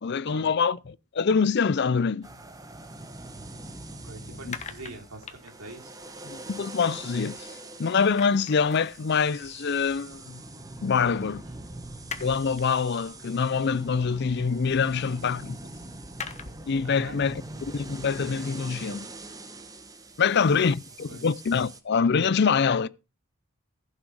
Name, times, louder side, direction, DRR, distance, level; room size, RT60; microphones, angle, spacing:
voice 1, 0.0-2.3 4.5-4.6 6.2-10.4 10.8-11.4 12.2-15.6 16.7-17.4 17.7-19.1 20.2-22.9, left 5 dB, 50° left, 0.5 m, -25 dB
sound 1, 2.2-21.8, right 2 dB, 15° right, 1.2 m, -43 dB
sound 2, 3.2-7.6 7.9-16.8, left 6 dB, 30° left, 1.1 m, -46 dB
voice 2, 4.0-6.0 11.5-11.6 15.0-15.2 16.8-17.2 20.2-20.7 21.1-21.3, right 2 dB, 75° right, 3.3 m, -44 dB
15.0 x 6.5 x 4.8 m
head